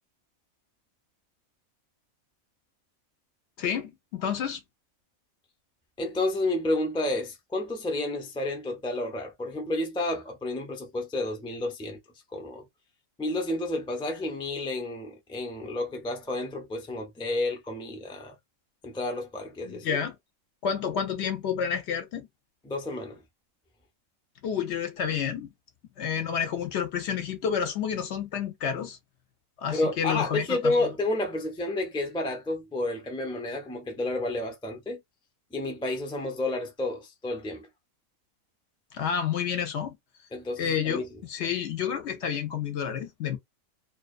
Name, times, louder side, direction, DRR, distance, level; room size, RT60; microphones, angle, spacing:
voice 1, 3.6-4.6 19.6-20.2 20.6-22.3 24.4-25.5 26.0-29.0 29.6-30.8 38.9-40.0 40.6-43.4, left 7 dB, 65° left, 0.8 m, -30 dB
voice 2, 6.0-12.0 12.3-12.6 13.2-18.3 18.8-20.0 22.6-23.2 29.7-35.0 35.5-37.7 40.3-41.1, left 2 dB, 10° left, 0.3 m, -30 dB
2.3 x 2.3 x 2.4 m
omnidirectional pair, 1.4 m